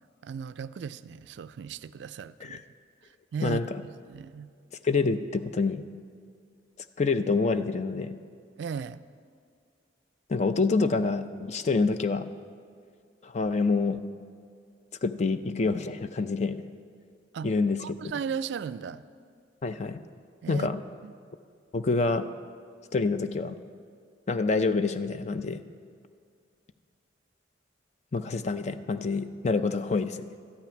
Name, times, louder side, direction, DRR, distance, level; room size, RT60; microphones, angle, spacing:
voice 1, 0.2-2.6 3.3-3.6 4.0-4.5 8.6-9.0 17.3-17.5 17.8-19.0 20.4-20.7 21.0-21.1, right 6 dB, 65° right, 14 dB, 0.3 m, -36 dB
voice 2, 3.4-3.8 4.8-5.9 7.0-8.2 10.3-12.2 13.2-14.0 15.0-16.6 17.4-18.1 19.6-20.0 20.5-20.8 21.7-22.3 22.9-23.6 24.3-25.6 28.1-30.3, left 4 dB, 35° left, 11 dB, 0.4 m, -27 dB
13.0 x 5.9 x 9.0 m, 2.2 s
head